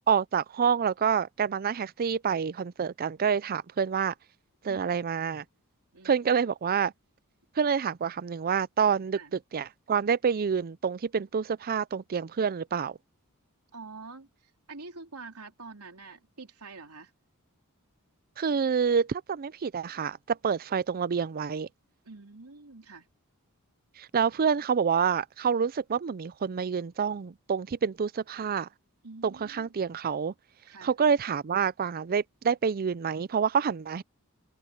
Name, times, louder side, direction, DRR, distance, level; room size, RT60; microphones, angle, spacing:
voice 1, 0.1-4.1 4.6-5.4 6.0-6.9 7.6-9.2 9.5-13.0 18.4-21.7 24.0-28.7 29.2-30.3 30.8-34.0, right 6 dB, 40° right, 0.4 m, -27 dB
voice 2, 4.6-5.0 5.9-6.3 9.1-9.3 13.7-17.1 22.0-23.1 29.0-29.7 30.7-30.9, right 3 dB, 80° right, 3.5 m, -46 dB
open air
head